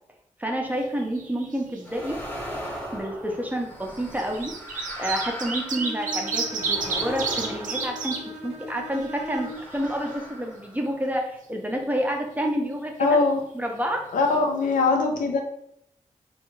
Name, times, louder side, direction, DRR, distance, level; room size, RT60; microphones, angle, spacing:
voice 1, 0.4-2.2 2.9-4.5 5.0-13.2 13.5-14.0, equal, 10° right, 1 dB, 0.6 m, -29 dB
sound 1, 0.7-1.5 1.7-1.8 3.0-3.1 4.0-8.2 8.7-8.8 9.0-10.1 13.9-14.0 14.3-14.4, right 4 dB, 85° right, 0.5 m, -30 dB
sound 2, 1.9-8.6 9.3-11.1, equal, 15° left, 0.9 m, -38 dB
Bowed string instrument, 5.7-9.8, equal, 50° right, 0.7 m, -39 dB
voice 2, 13.0-13.4 14.1-15.4, left 3 dB, 90° left, 3 dB, 0.5 m, -21 dB
3.3 x 2.4 x 3.1 m, 0.73 s
wide cardioid pair, 90°, 13 cm